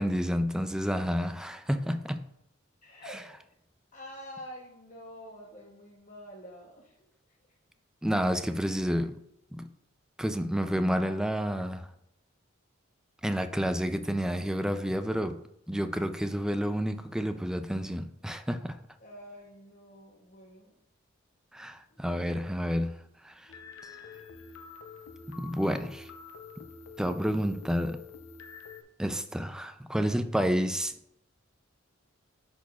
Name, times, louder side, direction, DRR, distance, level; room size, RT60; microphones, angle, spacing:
voice 1, 0.0-2.2 8.0-9.2 9.5-9.6 10.2-11.9 13.2-15.4 15.7-18.8 21.5-23.0 23.2-23.5 25.3-26.1 27.0-28.0 29.0-30.9, equal, 5° right, 0.3 m, -30 dB
voice 2, 2.8-3.4 3.9-7.0 7.5-7.6 19.0-20.8 21.9-22.3, equal, 40° left, 0.9 m, -47 dB
sound 1, 23.5-28.8, left 5 dB, 85° left, 0.7 m, -47 dB
10.5 x 4.1 x 2.3 m
head